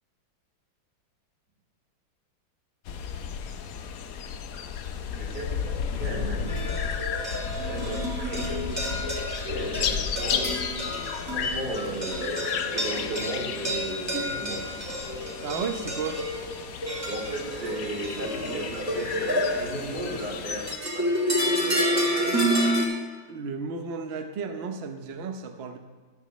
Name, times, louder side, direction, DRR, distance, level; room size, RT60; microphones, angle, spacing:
sound 1, 2.9-20.8, left 7 dB, 65° left, 0.9 m, -33 dB
voice 1, 5.1-6.7 7.6-9.1 9.4-10.5 11.3-14.8 17.1-20.7 20.9-22.7, right 2 dB, 50° right, -4 dB, 4.3 m, -35 dB
sound 2, 6.5-22.9, equal, 10° right, 1.4 m, -30 dB
voice 2, 15.4-16.2 23.3-25.8, right 5 dB, 70° right, 6 dB, 0.5 m, -33 dB
13.5 x 12.5 x 3.1 m, 1.4 s
omnidirectional pair, 2.1 m